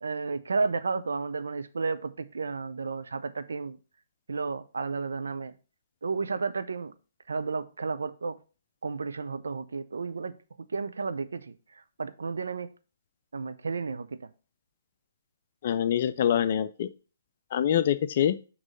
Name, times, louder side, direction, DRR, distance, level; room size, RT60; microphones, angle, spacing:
voice 1, 0.0-3.8 4.3-5.5 6.0-6.9 7.3-8.4 8.8-10.4 10.7-11.5 12.0-12.7 13.3-14.3, right 4 dB, 70° right, 12 dB, 0.5 m, -32 dB
voice 2, 15.6-16.9 17.5-18.4, left 9 dB, 45° left, 12 dB, 0.4 m, -25 dB
6.1 x 3.1 x 5.3 m, 0.35 s
figure-of-eight pair, 130°, 0 cm